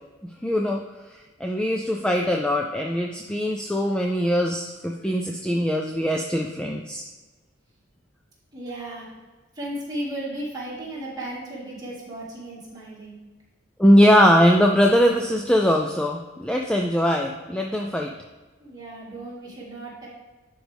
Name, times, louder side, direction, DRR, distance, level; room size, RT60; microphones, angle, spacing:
voice 1, 0.2-0.8 1.1-7.0 13.8-18.1, equal, 5° left, 1 dB, 0.3 m, -21 dB
voice 2, 8.5-9.1 9.5-13.2 18.6-20.1, right 1 dB, 20° right, -6 dB, 2.1 m, -35 dB
10.5 x 4.6 x 3.4 m, 1.3 s
head